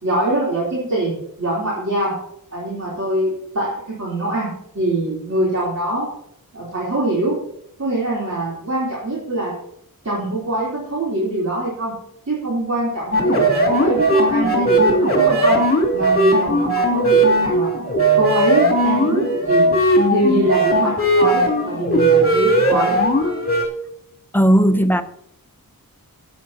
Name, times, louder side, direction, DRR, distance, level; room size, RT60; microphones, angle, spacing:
voice 1, 0.0-2.1 2.5-4.5 4.7-6.1 6.5-7.4 7.8-9.5 10.0-11.9 12.3-15.6 15.9-17.7 18.1-19.7 20.0-23.0, right 1 dB, 45° right, 3.4 m, -23 dB
sound 1, 13.1-23.7, right 1 dB, 35° left, 2.7 m, -17 dB
voice 2, 24.3-25.0, equal, 5° left, 0.7 m, -15 dB
16.5 x 8.7 x 2.8 m
wide cardioid pair, 75°, 36 cm